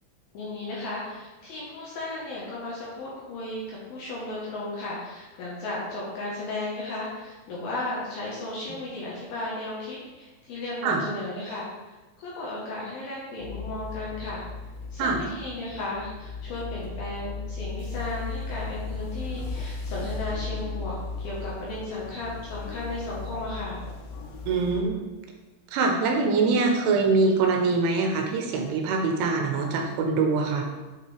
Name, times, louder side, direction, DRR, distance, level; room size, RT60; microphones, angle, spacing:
voice 1, 0.3-14.4 14.9-23.8, left 2 dB, 70° left, -5 dB, 2.5 m, -35 dB
sound 1, 13.4-24.8, left 3 dB, 85° left, 3.1 m, -36 dB
voice 2, 24.5-25.0 25.7-30.7, right 4 dB, 85° right, 2 dB, 3.3 m, -23 dB
8.0 x 5.6 x 3.3 m, 1.2 s
omnidirectional pair, 5.5 m